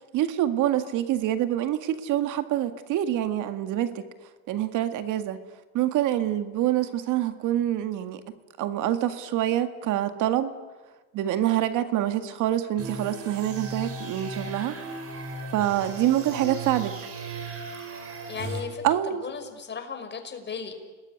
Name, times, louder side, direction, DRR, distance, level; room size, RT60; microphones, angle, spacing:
voice 1, 0.1-4.0 4.5-5.4 5.7-8.2 8.6-10.5 11.1-14.7 15.5-17.0 18.8-19.3, right 12 dB, 65° right, 9 dB, 2.0 m, -26 dB
sound 1, 12.8-18.6, right 3 dB, 45° right, 5.1 m, -36 dB
voice 2, 18.3-18.8 19.2-20.7, left 6 dB, 30° left, 6 dB, 5.5 m, -35 dB
30.0 x 20.5 x 9.7 m, 1.3 s
supercardioid pair, 105°, 33 cm